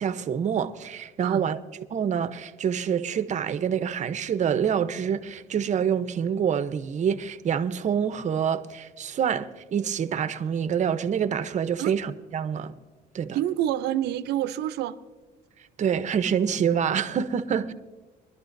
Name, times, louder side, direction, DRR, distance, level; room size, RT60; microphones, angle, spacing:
voice 1, 0.0-1.6 1.9-12.7 13.1-13.4 15.8-17.7, right 8 dB, 45° right, 0.8 m, -26 dB
voice 2, 13.3-15.0, right 12 dB, 80° right, 0.7 m, -27 dB
23.5 x 12.0 x 2.6 m
cardioid pair, 110°, 17 cm